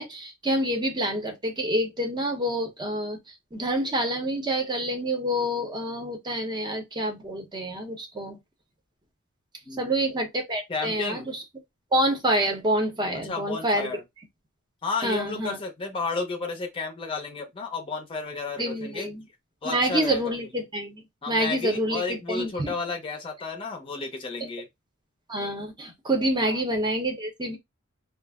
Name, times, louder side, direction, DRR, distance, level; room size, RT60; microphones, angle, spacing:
voice 1, 0.0-3.2 3.5-8.4 9.8-11.4 11.9-13.9 15.0-15.6 18.6-19.2 19.6-22.7 25.3-27.6, right 1 dB, 20° right, 0.7 m, -27 dB
voice 2, 9.6-10.1 10.7-11.3 13.2-14.0 14.8-19.1 19.6-20.2 21.2-24.7 26.4-26.6, left 3 dB, 25° left, 0.6 m, -32 dB
2.4 x 2.0 x 3.4 m
head